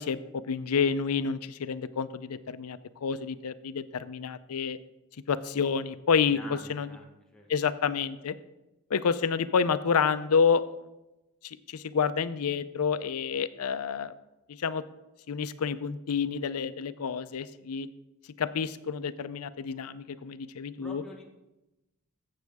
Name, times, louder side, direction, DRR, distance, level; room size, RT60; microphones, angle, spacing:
voice 1, 0.0-4.8 5.3-6.4 6.7-6.9 7.5-8.4 8.9-10.6 11.4-14.1 14.6-14.8 15.3-17.9 18.4-21.0, left 6 dB, 75° left, 15 dB, 0.5 m, -29 dB
voice 2, 6.3-7.5 20.8-21.3, left 2 dB, 5° left, -1 dB, 1.3 m, -46 dB
14.5 x 7.5 x 3.5 m, 1.0 s
head